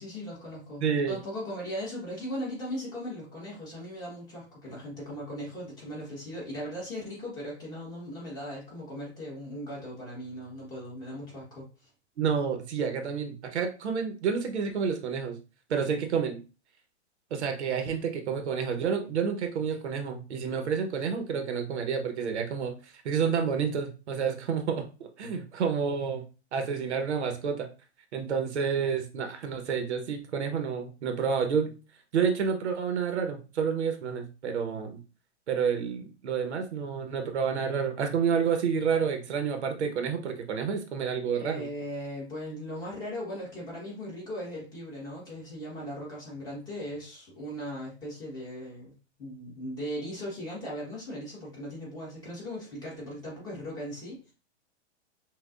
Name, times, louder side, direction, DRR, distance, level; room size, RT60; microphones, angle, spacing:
voice 1, 0.0-11.9 41.3-48.9 49.2-54.3, equal, 10° left, -5 dB, 1.3 m, -38 dB
voice 2, 0.8-1.2 12.2-15.4 15.7-16.4 17.3-22.7 23.0-26.2 26.5-27.7 28.1-31.7 32.1-35.0 35.5-41.7, right 6 dB, 80° right, 6 dB, 1.0 m, -29 dB
5.8 x 2.4 x 2.4 m, 0.33 s
hypercardioid pair, 165°, 34 cm